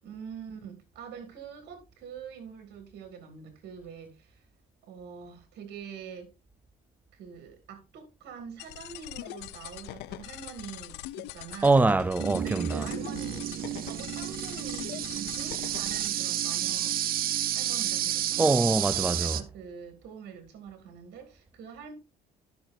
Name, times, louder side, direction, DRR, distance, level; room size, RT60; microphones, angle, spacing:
voice 1, 0.0-4.5 4.8-6.3 7.1-11.8 12.4-17.0 17.5-18.5 19.2-21.9, right 7 dB, 75° right, 2.4 m, -45 dB
sound 1, 8.6-16.1, left 17 dB, 90° left, 0.4 m, -42 dB
voice 2, 11.6-12.9 18.4-19.4, right 3 dB, 10° right, 0.4 m, -24 dB
sound 2, 12.2-19.4, right 12 dB, 60° right, 0.7 m, -31 dB
14.0 x 6.2 x 2.6 m
cardioid pair, 110°, 17 cm